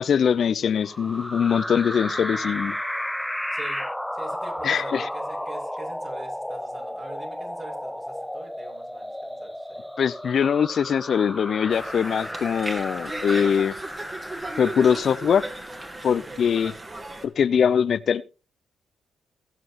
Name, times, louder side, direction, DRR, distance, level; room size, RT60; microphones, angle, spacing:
voice 1, 0.0-2.7 4.6-5.1 10.0-13.7 14.6-15.4 16.0-16.7 17.2-18.2, left 7 dB, 60° left, 0.6 m, -22 dB
sound 1, 0.8-16.5, equal, 5° left, 0.5 m, -34 dB
voice 2, 3.5-3.9 4.1-9.9 16.1-16.4, right 2 dB, 50° right, 6.5 m, -44 dB
Conversation, 11.7-17.3, right 2 dB, 30° right, 2.6 m, -36 dB
23.0 x 7.7 x 3.0 m
supercardioid pair, 55°, 0 cm